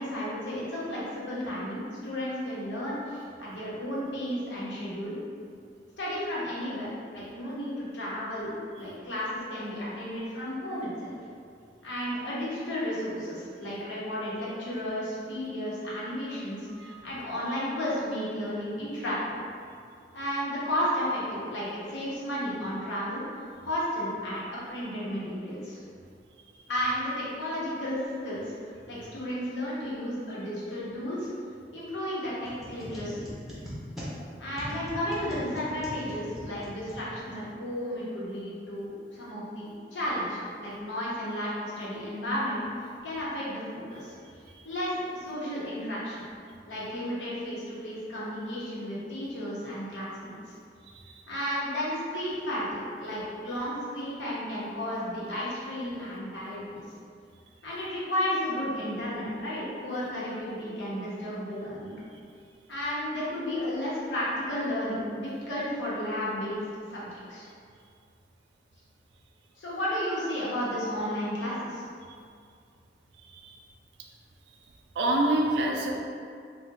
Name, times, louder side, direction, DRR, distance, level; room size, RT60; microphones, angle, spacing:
voice 1, 0.0-5.2 6.0-8.5 8.8-11.2 11.8-19.4 20.1-24.4 24.7-25.8 26.7-31.3 31.7-33.3 34.4-42.6 43.0-44.1 44.6-46.2 46.7-50.4 51.3-56.8 57.6-61.9 62.7-67.5 69.6-71.8, equal, 90° left, -8 dB, 0.9 m, -33 dB
sound 1, 32.4-37.5, equal, ahead, 0.5 m, -41 dB
voice 2, 75.0-76.0, right 1 dB, 75° right, 1 dB, 0.3 m, -26 dB
2.5 x 2.1 x 3.8 m, 2.3 s
head